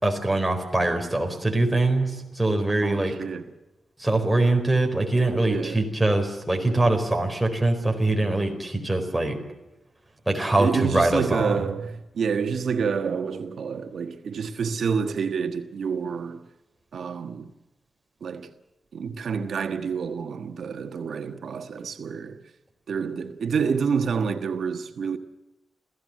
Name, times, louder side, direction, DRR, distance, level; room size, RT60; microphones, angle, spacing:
voice 1, 0.0-3.1 4.0-9.4 10.3-11.7, right 2 dB, 5° right, 4.3 m, -23 dB
voice 2, 2.8-3.5 5.4-5.9 10.6-16.5 16.9-17.5 18.2-18.5 18.9-22.4 22.9-25.2, right 6 dB, 70° right, 1.4 m, -28 dB
28.5 x 16.0 x 7.6 m
wide cardioid pair, 155°, 0 cm